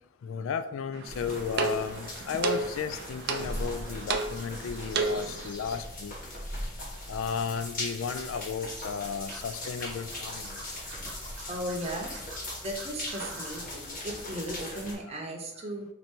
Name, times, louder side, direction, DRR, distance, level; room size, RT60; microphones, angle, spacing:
voice 1, 0.2-6.1 7.1-10.6, left 6 dB, 75° left, 11 dB, 0.3 m, -34 dB
sound 1, 0.9-5.5, right 4 dB, 55° right, 0.5 m, -33 dB
sound 2, 1.1-14.9, left 1 dB, 45° left, 1.2 m, -39 dB
Scratching (performance technique), 9.3-13.7, right 3 dB, 75° right, 1.0 m, -45 dB
voice 2, 11.5-12.1 12.6-15.9, equal, 30° right, 1 dB, 0.8 m, -36 dB
4.4 x 2.7 x 4.4 m, 0.88 s
head